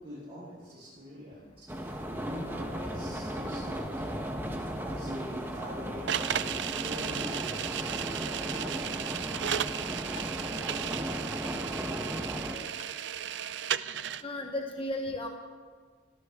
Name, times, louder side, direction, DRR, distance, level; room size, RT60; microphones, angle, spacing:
voice 1, 0.0-8.8, equal, 30° right, -11 dB, 6.1 m, -44 dB
sound 1, 1.7-12.6, equal, 10° right, 1.4 m, -36 dB
sound 2, 6.1-14.2, right 9 dB, 70° right, 0.5 m, -35 dB
sound 3, 6.3-6.4 7.2-7.4 8.5-8.7 10.2-10.4 11.4-11.5 12.8-12.9, left 3 dB, 90° left, 1.2 m, -46 dB
voice 2, 14.2-15.3, left 1 dB, 30° left, 2 dB, 1.3 m, -34 dB
25.5 x 14.5 x 3.8 m, 1.5 s
head